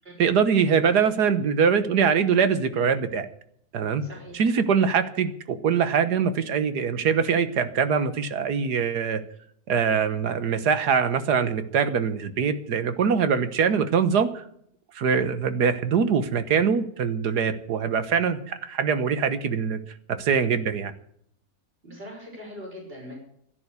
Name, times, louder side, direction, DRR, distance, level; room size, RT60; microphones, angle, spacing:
voice 1, 0.2-3.3 3.7-4.0 4.3-9.2 9.7-14.4 15.0-19.8 20.1-20.9, right 6 dB, 85° right, 12 dB, 1.8 m, -23 dB
voice 2, 4.0-4.4 21.8-23.2, equal, 35° right, -1 dB, 6.3 m, -41 dB
12.5 x 11.0 x 8.3 m, 0.67 s
omnidirectional pair, 1.7 m